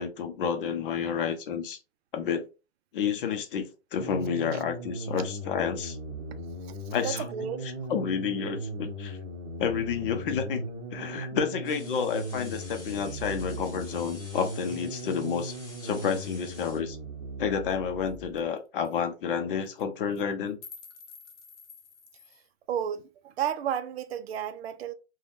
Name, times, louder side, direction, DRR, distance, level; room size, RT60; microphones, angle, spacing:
voice 1, 0.0-1.8 2.1-2.4 2.9-6.0 6.9-7.2 7.9-9.2 9.6-10.6 10.9-15.6 15.8-17.0 17.4-20.6, left 7 dB, 50° left, 0.6 m, -30 dB
sound 1, 4.0-18.5, right 1 dB, 30° right, 0.9 m, -38 dB
voice 2, 7.0-7.6 22.7-24.9, right 9 dB, 60° right, 0.5 m, -32 dB
sound 2, 11.6-16.8, left 2 dB, 10° left, 0.8 m, -49 dB
sound 3, 17.7-17.8 18.1-18.2 18.4-18.6 18.8-19.0 19.6-19.8 20.2-22.5, left 5 dB, 80° left, 0.8 m, -49 dB
3.3 x 2.3 x 2.5 m
hypercardioid pair, 150°, 35 cm